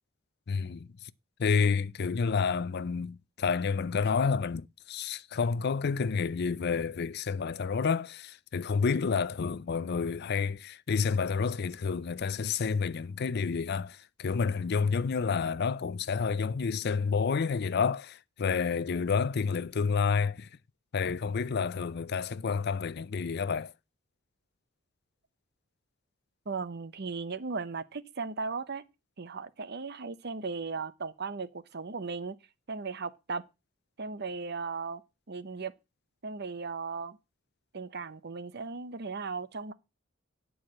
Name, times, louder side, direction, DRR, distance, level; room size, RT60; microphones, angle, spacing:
voice 1, 0.5-1.1 1.4-20.5 20.9-23.7, left 5 dB, 55° left, 0.5 m, -29 dB
voice 2, 26.5-28.8 29.2-32.4 32.7-33.4 34.0-35.0 35.3-35.7 36.2-37.2 37.7-39.7, right 4 dB, 55° right, 0.9 m, -36 dB
10.5 x 4.7 x 7.5 m
head